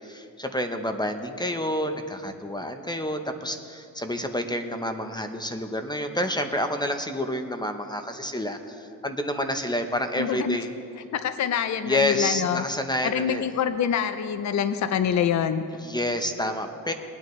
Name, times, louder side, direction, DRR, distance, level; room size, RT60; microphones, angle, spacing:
voice 1, 0.0-10.7 11.8-13.5 15.8-16.9, left 1 dB, 10° left, 6 dB, 0.7 m, -29 dB
voice 2, 10.2-10.6 11.1-12.6 13.0-15.6, left 8 dB, 50° left, 11 dB, 0.5 m, -25 dB
20.0 x 9.2 x 3.2 m, 2.6 s
cardioid pair, 95°, 37 cm